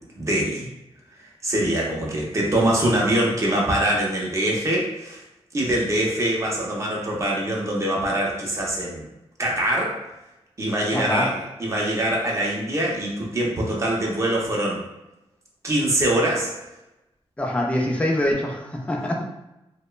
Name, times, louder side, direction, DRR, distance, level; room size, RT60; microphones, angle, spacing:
voice 1, 0.2-0.7 1.4-5.2 5.5-9.0 9.4-10.0 10.6-14.8 15.6-16.5, right 1 dB, 30° right, -3 dB, 0.6 m, -23 dB
voice 2, 10.9-11.3 17.4-19.2, left 1 dB, 10° left, -1 dB, 0.4 m, -24 dB
2.9 x 2.1 x 2.2 m, 0.92 s
wide cardioid pair, 105°, 11 cm